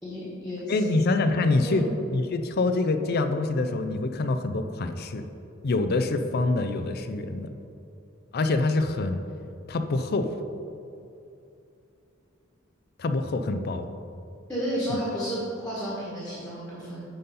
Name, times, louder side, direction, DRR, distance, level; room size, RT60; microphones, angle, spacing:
voice 1, 0.0-1.0 1.6-1.8 14.5-17.0, equal, 5° left, -7 dB, 1.5 m, -32 dB
voice 2, 0.7-1.8 2.1-5.2 5.6-7.5 8.3-9.2 9.7-10.3 13.0-13.9 14.9-15.0, left 3 dB, 50° left, 8 dB, 0.5 m, -25 dB
9.3 x 4.1 x 5.4 m, 2.7 s
head